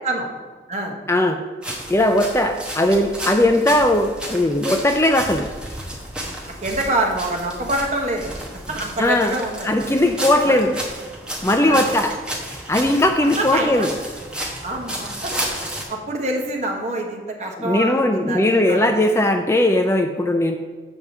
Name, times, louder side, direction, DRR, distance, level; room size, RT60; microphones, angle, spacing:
voice 1, 1.1-1.4 1.9-5.5 9.0-9.3 9.6-10.8 11.4-12.1 12.7-13.9 17.6-20.5, left 1 dB, 15° left, 5 dB, 0.4 m, -18 dB
sound 1, 1.6-15.8, right 1 dB, 5° right, 1.1 m, -32 dB
voice 2, 6.6-8.3 8.7-9.7 10.4-10.6 11.6-11.9 13.4-13.9 14.6-15.3 15.9-18.9, right 1 dB, 40° right, 1 dB, 1.2 m, -26 dB
7.2 x 4.8 x 6.6 m, 1.4 s
head